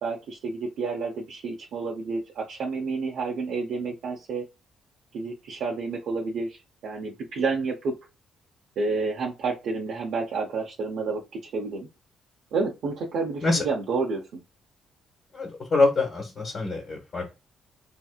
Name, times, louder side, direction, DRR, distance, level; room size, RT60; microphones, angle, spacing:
voice 1, 0.0-4.5 5.1-8.0 8.8-11.9 12.5-14.4, right 4 dB, 75° right, -2 dB, 0.7 m, -30 dB
voice 2, 15.3-17.3, left 3 dB, 45° left, 0 dB, 1.0 m, -25 dB
3.2 x 2.8 x 2.3 m, 0.26 s
cardioid pair, 90°, 0 cm